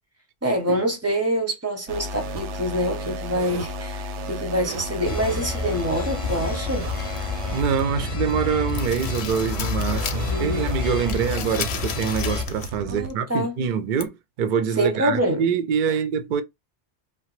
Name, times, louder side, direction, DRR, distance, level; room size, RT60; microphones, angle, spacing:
voice 1, 0.4-6.9 10.2-10.7 12.8-13.5 14.8-15.5, right 1 dB, 15° right, 0.7 m, -25 dB
sound 1, 1.9-13.1, right 2 dB, 90° right, 0.9 m, -33 dB
sound 2, 5.0-12.4, left 5 dB, 40° left, 0.6 m, -30 dB
sound 3, 6.9-8.0 8.3-10.4 10.7-12.8 13.1-13.2 14.0-14.1, left 7 dB, 75° left, 0.8 m, -35 dB
voice 2, 7.5-16.4, right 7 dB, 60° right, 0.6 m, -25 dB
2.9 x 2.0 x 3.0 m
omnidirectional pair, 1.2 m